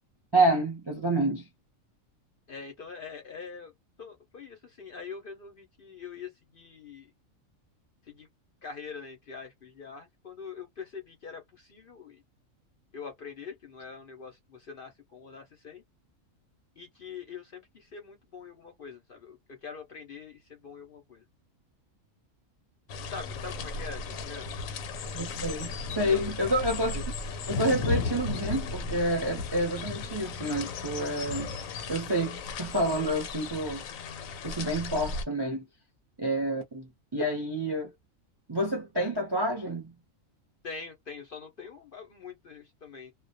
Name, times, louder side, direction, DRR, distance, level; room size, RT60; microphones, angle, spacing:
voice 1, 0.3-1.5 25.1-25.7 25.9-27.0 27.5-31.5 31.9-33.8 34.4-35.6 36.2-37.9 38.5-39.9, right 1 dB, 35° right, 0.4 m, -28 dB
voice 2, 2.5-3.7 4.0-7.1 8.0-8.3 8.6-12.2 12.9-15.8 16.8-21.2 22.9-24.5 26.0-26.3 40.6-43.1, left 5 dB, 55° left, 0.6 m, -44 dB
sound 1, 22.9-35.2, left 4 dB, 85° left, 1.0 m, -35 dB
2.3 x 2.1 x 2.6 m
omnidirectional pair, 1.4 m